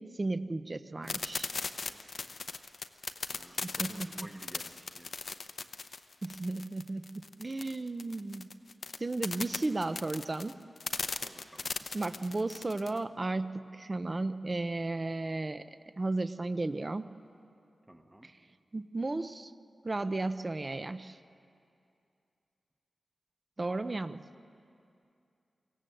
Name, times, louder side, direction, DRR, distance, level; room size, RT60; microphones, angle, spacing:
voice 1, 0.0-1.5 3.6-4.3 6.2-7.1 7.4-8.5 9.0-10.6 11.9-15.7 16.0-17.1 18.2-18.3 18.7-19.5 19.8-21.2 23.6-24.2, right 2 dB, 30° right, 12 dB, 0.6 m, -34 dB
sound 1, 1.1-13.0, left 4 dB, 55° left, 0.8 m, -37 dB
voice 2, 1.8-2.3 3.3-5.1 11.2-11.7 17.9-18.3, right 1 dB, 15° right, 5 dB, 1.1 m, -53 dB
25.0 x 17.0 x 7.8 m, 2.5 s
wide cardioid pair, 130°, 0 cm